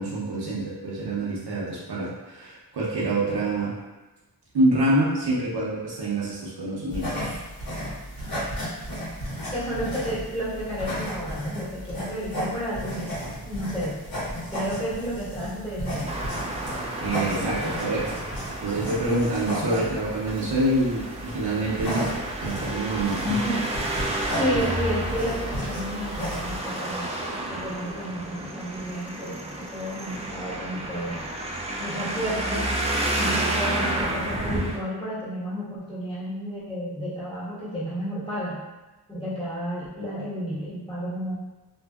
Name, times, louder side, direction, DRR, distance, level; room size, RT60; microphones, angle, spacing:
voice 1, 0.0-3.7 4.5-7.4 17.0-18.0 18.6-22.1 22.4-23.2, right 1 dB, 85° right, -6 dB, 0.7 m, -26 dB
sound 1, 6.9-26.6, equal, 60° left, 1.3 m, -34 dB
voice 2, 9.5-13.1 13.4-14.0 14.5-16.1 19.6-19.8 23.2-23.6 24.3-27.1 27.5-31.2 31.8-32.7 33.1-38.6 39.1-41.3, equal, 15° left, -11 dB, 1.4 m, -31 dB
Traffic noise roadway noise, 16.1-34.8, right 1 dB, 15° right, 0.4 m, -31 dB
2.6 x 2.6 x 2.3 m, 1.1 s
wide cardioid pair, 65°, 39 cm